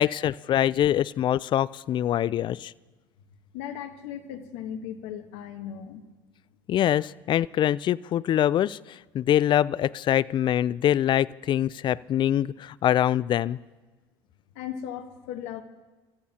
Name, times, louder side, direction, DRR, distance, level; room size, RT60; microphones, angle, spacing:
voice 1, 0.0-2.7 6.7-13.6, left 11 dB, 45° left, 21 dB, 0.4 m, -24 dB
voice 2, 3.5-6.0 14.5-15.6, left 9 dB, 70° left, 9 dB, 1.2 m, -37 dB
28.5 x 14.5 x 2.9 m, 1.2 s
hypercardioid pair, 70°, 12 cm